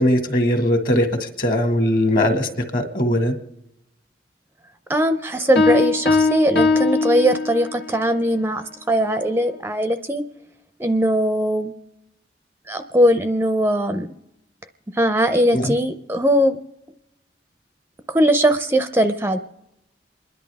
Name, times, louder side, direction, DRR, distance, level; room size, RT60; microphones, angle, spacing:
voice 1, 0.0-3.3 15.5-15.7, left 1 dB, 50° left, 6 dB, 1.9 m, -20 dB
voice 2, 4.9-10.2 10.8-11.7 12.7-14.1 14.9-16.6 18.1-19.4, equal, 15° right, 9 dB, 0.5 m, -20 dB
Piano, 5.6-7.9, left 3 dB, 70° left, 1.3 m, -20 dB
28.0 x 11.0 x 3.5 m, 0.88 s
head